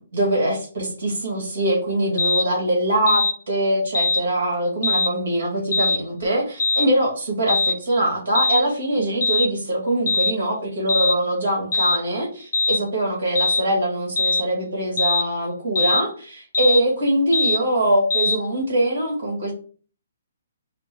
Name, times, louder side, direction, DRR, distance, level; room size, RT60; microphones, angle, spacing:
voice 1, 0.1-19.5, right 1 dB, 70° right, -2 dB, 2.2 m, -23 dB
sound 1, 2.2-2.5 3.1-3.3 3.9-4.2 4.8-5.1 5.7-6.0 6.6-6.9 7.5-7.8 8.3-8.6 9.2-9.5 10.1-10.3 10.9-11.2 11.7-12.0 12.5-12.8 13.3-13.6 14.2-14.4 15.0-15.3 15.7-16.0 16.5-16.8 17.3-17.6 18.1-18.4, left 3 dB, 75° left, 0.8 m, -21 dB
4.4 x 2.5 x 4.6 m, 0.41 s
hypercardioid pair, 170°, 0 cm